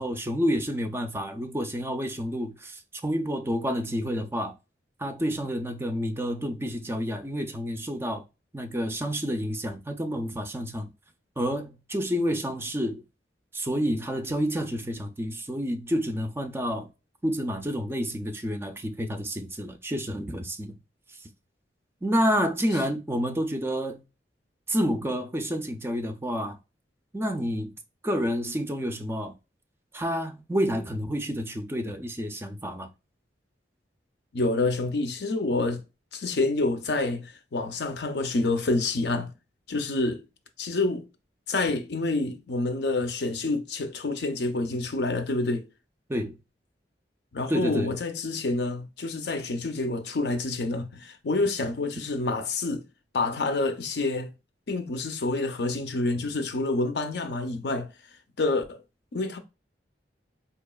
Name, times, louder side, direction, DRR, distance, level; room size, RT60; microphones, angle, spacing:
voice 1, 0.0-4.5 5.0-8.2 8.5-10.9 11.4-13.0 13.5-16.9 17.2-20.8 22.0-24.0 24.7-26.6 27.1-27.7 28.0-29.3 29.9-32.9 46.1-46.4 47.5-47.9, equal, 15° right, 0.4 m, -29 dB
voice 2, 34.3-35.8 36.1-39.3 39.7-40.2 40.6-41.1 41.5-45.6 47.3-52.8 53.1-54.3 54.7-57.9 58.4-58.8 59.1-59.4, left 2 dB, 65° left, 0.6 m, -28 dB
4.6 x 2.8 x 2.3 m
head